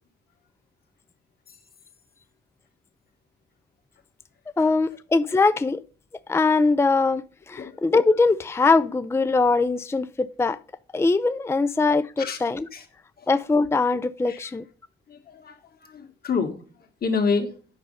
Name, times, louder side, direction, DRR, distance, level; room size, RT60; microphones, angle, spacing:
voice 1, 4.6-5.8 6.3-10.6 10.9-12.7 13.3-14.6, left 3 dB, 15° left, 0.5 m, -22 dB
voice 2, 15.1-16.5 17.0-17.5, left 5 dB, 50° left, 2.2 m, -27 dB
10.5 x 5.2 x 5.8 m
cardioid pair, 90°, 20 cm